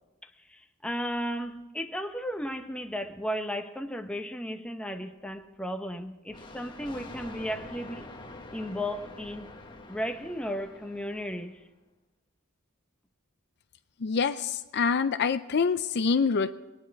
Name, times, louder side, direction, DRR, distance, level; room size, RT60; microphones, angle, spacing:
voice 1, 0.5-8.0 8.5-9.5 9.9-11.6, equal, 5° left, 5 dB, 0.8 m, -34 dB
Thunder, 6.3-11.6, left 2 dB, 20° left, 1.3 m, -46 dB
voice 2, 14.0-16.5, left 5 dB, 50° left, 11 dB, 0.5 m, -26 dB
21.0 x 9.6 x 4.6 m, 1.1 s
head